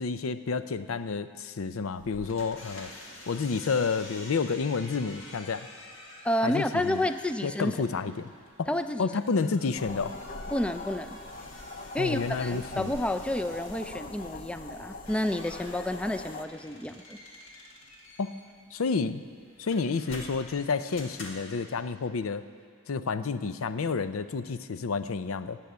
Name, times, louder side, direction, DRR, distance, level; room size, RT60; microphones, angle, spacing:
voice 1, 0.0-2.9 3.3-5.7 6.4-7.0 7.4-8.3 8.6-8.7 9.0-10.1 12.0-12.9 18.2-18.4 18.7-19.2 19.6-22.4 22.9-25.6, left 4 dB, 90° left, 12 dB, 0.5 m, -30 dB
sound 1, 1.9-21.7, left 1 dB, 65° left, 2.0 m, -49 dB
voice 2, 6.2-7.8 8.7-9.1 10.5-11.2 11.9-17.2, left 1 dB, 5° left, 9 dB, 0.4 m, -30 dB
sound 2, 9.8-16.5, left 2 dB, 45° left, 0.7 m, -42 dB
15.5 x 7.6 x 9.4 m, 2.2 s
head